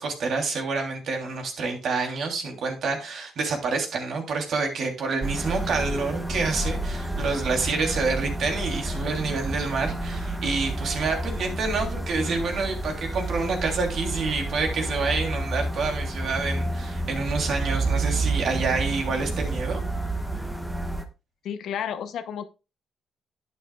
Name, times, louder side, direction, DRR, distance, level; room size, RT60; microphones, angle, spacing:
voice 1, 0.0-19.8, right 4 dB, 65° right, 3.2 m, -28 dB
sound 1, 5.2-21.0, right 2 dB, 5° right, 1.4 m, -30 dB
voice 2, 21.4-22.4, left 8 dB, 70° left, 0.9 m, -31 dB
11.5 x 9.1 x 2.4 m
cardioid pair, 90°, 0 cm